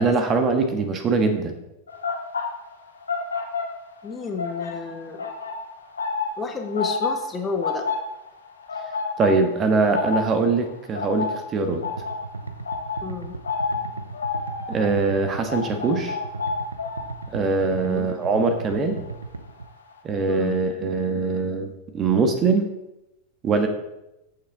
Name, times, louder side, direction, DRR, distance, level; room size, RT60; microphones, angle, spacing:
voice 1, 0.0-1.5 9.2-11.8 14.7-16.2 17.3-19.0 20.0-22.7 23.4-23.7, right 4 dB, 25° right, 7 dB, 1.4 m, -22 dB
sound 1, 1.9-4.1 4.3-19.2 19.5-19.8, left 4 dB, 75° left, 1.8 m, -30 dB
voice 2, 4.0-5.3 6.4-7.8 13.0-13.3 17.8-18.1 20.3-20.6, left 5 dB, 20° left, 4 dB, 1.4 m, -31 dB
sound 2, 11.7-19.7, right 3 dB, 75° right, 0.6 m, -36 dB
14.0 x 7.3 x 3.6 m, 0.91 s
figure-of-eight pair, 90°, 0 cm